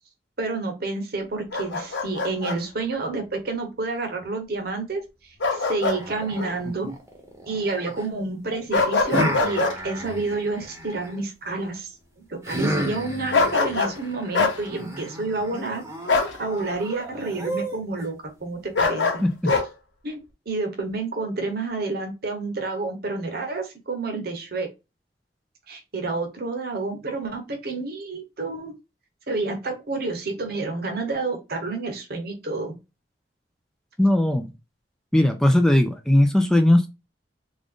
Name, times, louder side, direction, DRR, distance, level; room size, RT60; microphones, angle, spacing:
voice 1, 0.4-5.0 5.5-6.9 7.5-15.8 16.4-19.2 20.0-20.2 20.5-24.7 25.7-28.7 29.3-32.7, right 3 dB, 55° right, 0.9 m, -29 dB
Bark, 1.5-2.6 5.4-6.0 6.4-6.5 8.7-9.8 13.3-14.0 14.3-14.6 16.1-16.4 18.7-19.7, left 3 dB, 85° left, 0.9 m, -23 dB
sound 1, 5.9-8.1 9.1-11.2 12.4-18.0, right 1 dB, 15° right, 0.8 m, -32 dB
voice 2, 19.2-19.5 34.0-34.5 35.1-36.9, left 1 dB, 5° left, 0.3 m, -18 dB
3.6 x 2.5 x 3.5 m
head